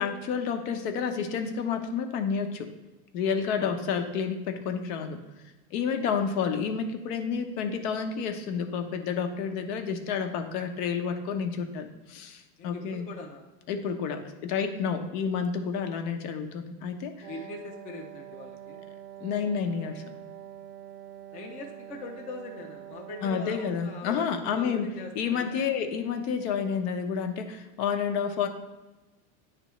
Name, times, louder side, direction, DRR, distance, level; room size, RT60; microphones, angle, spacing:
voice 1, 0.0-2.7 3.1-5.2 5.7-13.0 13.7-17.3 19.2-20.0 23.2-24.9 25.1-28.5, left 6 dB, 75° left, 6 dB, 0.9 m, -30 dB
voice 2, 6.0-6.4 12.6-13.5 17.3-18.8 21.3-25.6, left 3 dB, 20° left, 2 dB, 0.4 m, -42 dB
Wind instrument woodwind instrument, 17.2-24.0, right 11 dB, 75° right, 0.7 m, -45 dB
9.1 x 3.4 x 3.1 m, 1.1 s
supercardioid pair, 140°, 48 cm